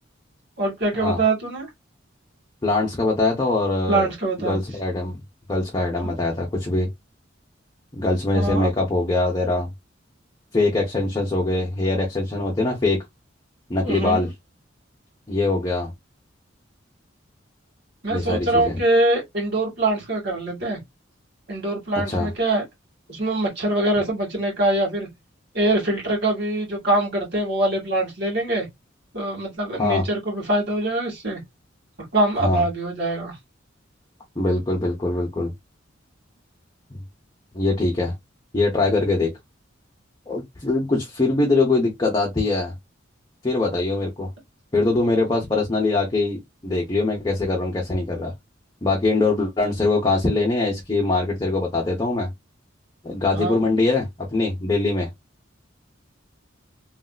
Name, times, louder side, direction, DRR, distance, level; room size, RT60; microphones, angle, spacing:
voice 1, 0.6-1.7 3.9-4.6 8.3-8.7 13.8-14.3 18.0-20.8 21.5-22.6 23.1-25.1 25.5-28.7 29.1-31.4 32.1-33.4 53.3-53.8, right 2 dB, 60° right, 1.9 m, -23 dB
voice 2, 2.6-4.1 4.4-5.2 5.5-6.9 7.9-9.7 10.5-13.0 13.7-14.3 15.3-15.9 18.1-18.8 22.1-22.3 29.8-30.0 32.4-32.6 34.4-35.5 37.5-38.1 38.5-39.3 40.3-42.7 43.4-44.3 44.7-48.3 48.8-52.3 53.0-55.1, left 2 dB, 20° left, 0.7 m, -22 dB
3.2 x 2.7 x 2.3 m
head